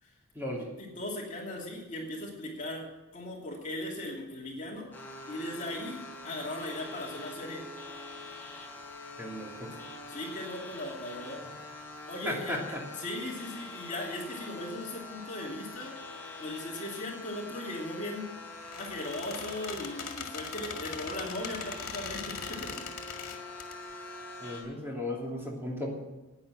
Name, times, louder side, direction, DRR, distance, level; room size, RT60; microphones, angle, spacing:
voice 1, 0.6-2.9 3.1-4.9 5.3-7.6 10.1-11.4 12.1-12.6 12.9-15.9 16.4-18.3 18.7-22.8, left 1 dB, 35° left, -2 dB, 2.7 m, -38 dB
sound 1, 4.9-24.6, left 2 dB, 10° left, 3.3 m, -44 dB
voice 2, 9.2-9.7 12.2-12.8 24.4-25.9, left 1 dB, 10° right, -2 dB, 2.8 m, -35 dB
Squeak, 18.6-23.7, left 6 dB, 80° left, 1.9 m, -41 dB
12.0 x 9.5 x 7.4 m, 1.1 s
head